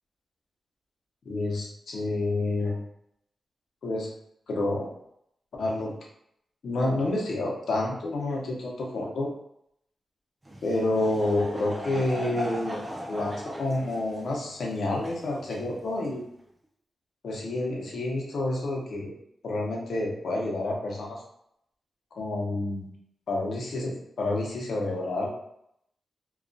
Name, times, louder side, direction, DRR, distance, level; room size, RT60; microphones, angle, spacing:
voice 1, 1.3-2.8 3.8-4.1 4.5-4.9 5.6-6.0 6.6-9.3 10.6-16.2 17.2-19.1 19.4-21.2 22.1-22.9 23.3-25.3, left 2 dB, 70° left, -2 dB, 0.6 m, -29 dB
Laughter / Crowd, 10.4-16.2, equal, 20° right, 0.3 m, -38 dB
2.3 x 2.2 x 2.5 m, 0.74 s
wide cardioid pair, 110°, 0 cm